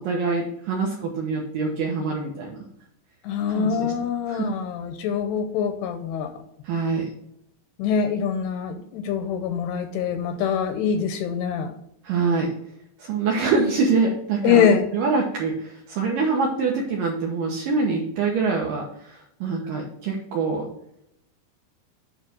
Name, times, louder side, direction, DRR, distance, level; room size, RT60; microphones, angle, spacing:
voice 1, 0.0-2.6 3.5-3.9 4.2-4.5 6.6-7.1 12.0-12.5 13.0-20.7, right 4 dB, 75° right, -1 dB, 2.1 m, -25 dB
voice 2, 3.2-6.4 7.8-11.7 14.4-14.9, left 7 dB, 80° left, 7 dB, 2.5 m, -24 dB
9.1 x 3.2 x 6.1 m, 0.78 s
omnidirectional pair, 5.1 m